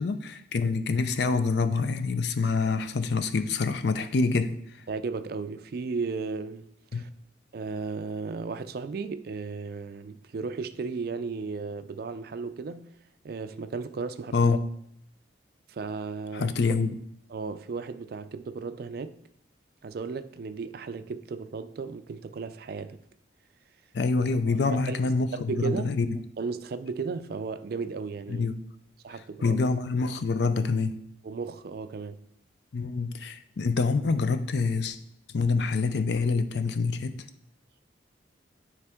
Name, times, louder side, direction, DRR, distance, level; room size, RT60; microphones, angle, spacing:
voice 1, 0.0-4.6 6.9-7.1 14.3-14.6 16.3-16.9 23.9-26.2 28.3-28.6 29.4-31.0 32.7-35.0 35.3-37.2, left 4 dB, 60° left, 0.4 m, -26 dB
voice 2, 4.9-7.1 7.5-12.9 13.2-14.4 15.7-16.5 17.3-19.2 19.8-23.0 24.5-25.9 26.4-28.5 29.0-29.6 31.2-32.2, right 4 dB, 50° right, 0.3 m, -35 dB
9.4 x 3.4 x 3.6 m
head